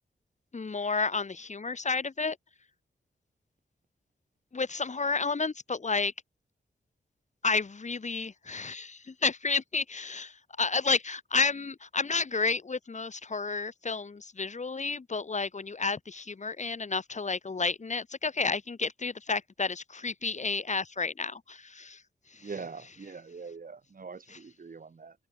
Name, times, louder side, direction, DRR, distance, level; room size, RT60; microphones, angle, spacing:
voice 1, 0.5-2.4 4.5-6.1 7.4-22.0 24.3-24.4, left 4 dB, 40° left, 2.7 m, -31 dB
voice 2, 22.4-25.1, right 5 dB, 50° right, 4.1 m, -43 dB
wide cardioid pair, 135°, 19 cm